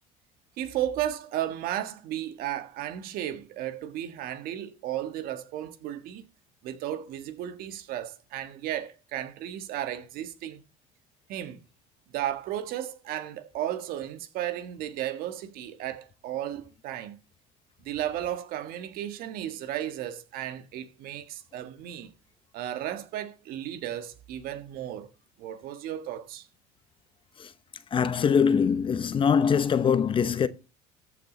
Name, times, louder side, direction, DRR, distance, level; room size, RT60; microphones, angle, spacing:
voice 1, 0.6-6.2 6.6-10.6 11.3-11.6 12.1-17.2 17.8-22.1 22.5-25.1 25.4-26.5, right 12 dB, 65° right, 1.5 m, -34 dB
voice 2, 27.9-30.5, left 7 dB, 30° left, 0.8 m, -23 dB
14.0 x 6.2 x 4.0 m
supercardioid pair, 110°, 16 cm